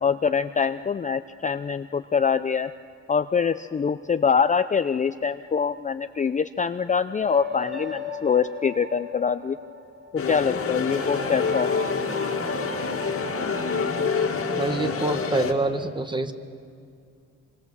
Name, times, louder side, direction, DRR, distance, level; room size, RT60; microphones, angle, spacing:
voice 1, 0.0-2.7 3.1-9.6 10.1-11.7, left 6 dB, 25° left, 11 dB, 0.5 m, -24 dB
sound 1, 7.2-15.7, left 1 dB, 35° right, 5.6 m, -38 dB
sound 2, 10.2-15.5, left 5 dB, 45° left, 2.2 m, -27 dB
voice 2, 14.6-16.3, right 2 dB, 15° right, 8 dB, 1.5 m, -26 dB
25.5 x 24.5 x 7.3 m, 2.3 s
cardioid pair, 90°, 30 cm